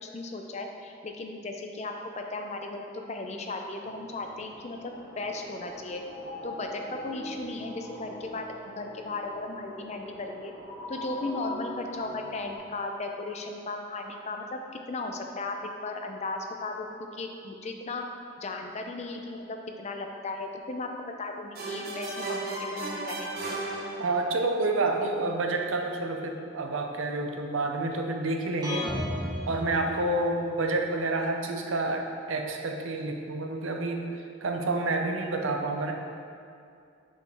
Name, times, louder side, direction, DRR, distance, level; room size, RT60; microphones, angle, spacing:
voice 1, 0.0-2.8 3.1-6.0 6.4-8.4 8.8-10.5 10.9-15.6 15.8-18.0 18.4-20.9 21.2-23.3, left 2 dB, 35° left, 3 dB, 0.5 m, -36 dB
sound 1, 3.8-12.6, left 1 dB, 80° left, 1.3 m, -42 dB
sound 2, 21.5-24.5, right 2 dB, 50° right, 0.9 m, -35 dB
voice 2, 24.0-28.9 29.5-35.9, right 2 dB, 90° right, 3 dB, 0.6 m, -29 dB
sound 3, 28.6-30.6, left 1 dB, 20° right, 1.0 m, -34 dB
6.5 x 5.3 x 3.4 m, 2.4 s
head